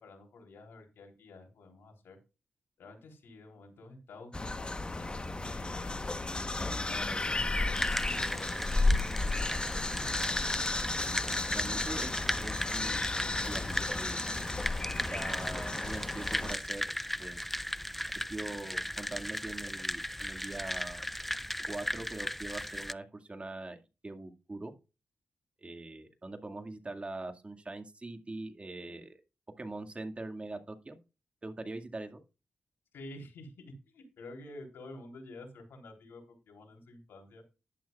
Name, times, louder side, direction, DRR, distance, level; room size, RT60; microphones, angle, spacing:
voice 1, 0.0-2.2 2.8-6.0 6.6-10.1 32.9-37.4, left 2 dB, 85° left, 3 dB, 3.6 m, -50 dB
sound 1, 4.3-16.6, left 2 dB, 25° left, 1.2 m, -33 dB
sound 2, 7.7-22.9, equal, 5° left, 0.4 m, -37 dB
voice 2, 11.5-12.1 12.4-13.1 13.5-14.2 15.1-17.4 18.3-21.1 21.7-23.8 24.0-24.7 25.6-29.2 29.6-31.0 31.4-32.2, right 2 dB, 30° right, 6 dB, 2.1 m, -42 dB
11.5 x 11.0 x 2.4 m, 0.30 s
cardioid pair, 55°, 4 cm